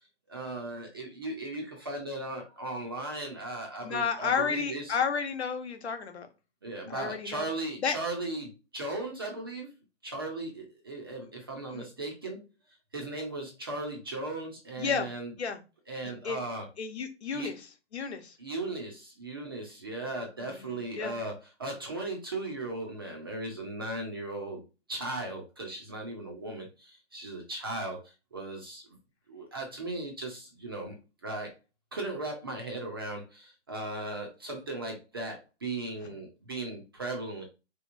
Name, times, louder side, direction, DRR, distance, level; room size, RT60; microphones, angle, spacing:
voice 1, 0.3-5.0 6.6-9.7 10.0-12.5 12.9-15.3 15.9-16.7 17.3-17.5 18.4-24.6 24.9-28.8 29.3-31.0 31.2-31.5 31.9-37.4, right 2 dB, 20° right, 1 dB, 0.5 m, -37 dB
voice 2, 3.8-6.3 6.9-7.5 7.8-8.0 11.7-11.8 14.8-15.1 15.4-15.6 16.2-16.4 16.8-17.7 17.9-18.4 20.4-21.1, left 6 dB, 65° left, 7 dB, 1.0 m, -32 dB
3.9 x 2.9 x 2.5 m, 0.29 s
hypercardioid pair, 150°, 35 cm